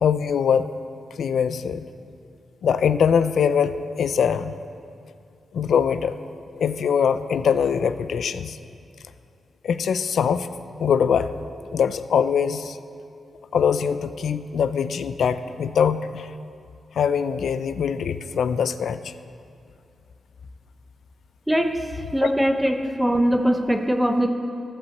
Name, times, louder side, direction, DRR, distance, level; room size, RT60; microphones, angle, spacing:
voice 1, 0.0-0.7 1.2-1.9 2.6-4.6 5.5-6.2 6.6-8.6 9.6-10.5 10.8-11.3 11.7-12.8 13.5-16.3 17.0-19.1, left 7 dB, 75° left, 12 dB, 0.4 m, -22 dB
voice 2, 21.5-21.8 22.1-24.3, equal, 5° right, 5 dB, 0.8 m, -21 dB
15.5 x 5.4 x 7.2 m, 2.5 s
wide cardioid pair, 115°, 0 cm